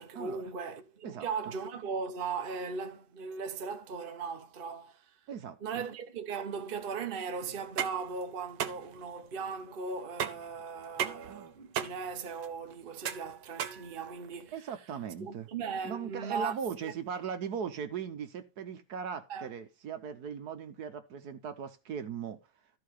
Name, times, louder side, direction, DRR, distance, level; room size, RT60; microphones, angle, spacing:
voice 1, 0.0-5.1 5.6-14.6 15.2-16.5 16.8-16.9 19.3-19.5, right 5 dB, 35° right, 1.0 m, -38 dB
sound 1, 7.5-14.5, right 9 dB, 85° right, 1.6 m, -38 dB
voice 2, 14.5-15.5 15.8-22.4, right 7 dB, 65° right, 1.4 m, -38 dB
13.5 x 4.7 x 4.9 m
omnidirectional pair, 1.9 m